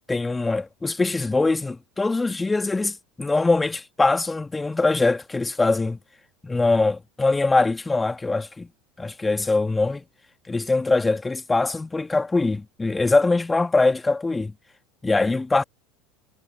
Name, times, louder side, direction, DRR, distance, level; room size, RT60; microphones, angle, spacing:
voice 1, 0.1-6.0 6.4-8.7 9.0-10.0 10.5-14.5 15.0-15.6, left 3 dB, 15° left, 2.4 m, -22 dB
figure-of-eight pair, 70°, 0 cm